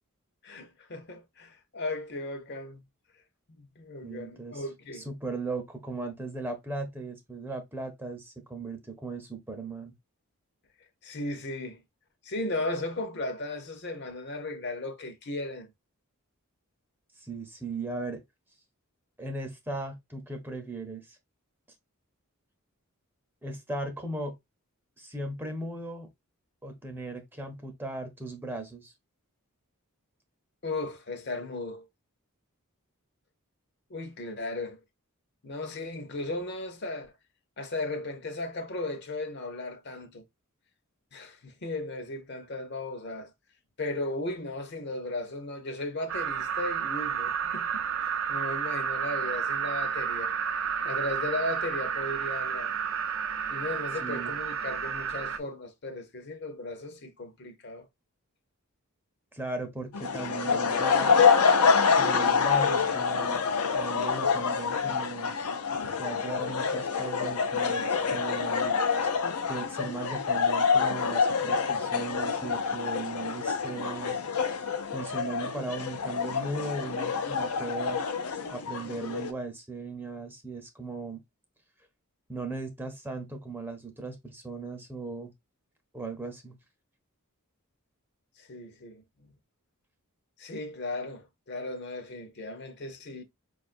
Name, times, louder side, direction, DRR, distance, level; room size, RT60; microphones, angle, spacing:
voice 1, 0.4-2.8 3.6-5.1 11.0-11.8 12.2-15.7 30.6-31.9 33.9-34.8 35.4-37.1 37.6-40.2 41.1-43.3 43.8-47.8 48.3-50.3 50.8-52.7 53.5-57.9 88.4-89.3 90.4-93.2, left 2 dB, 50° left, 0.7 m, -36 dB
voice 2, 4.0-4.6 4.9-9.9 17.2-18.2 19.2-21.2 23.4-24.4 25.0-26.1 26.6-28.9 54.0-54.3 59.3-61.2 61.8-63.4 63.7-65.4 65.9-68.8 69.0-69.1 69.5-74.2 74.9-78.0 78.5-81.2 82.3-85.3 85.9-86.6, right 2 dB, 10° right, 0.7 m, -37 dB
sound 1, 46.1-55.4, right 7 dB, 60° right, 0.5 m, -31 dB
sound 2, 59.9-79.3, left 5 dB, 90° left, 0.7 m, -27 dB
5.1 x 2.5 x 2.5 m
head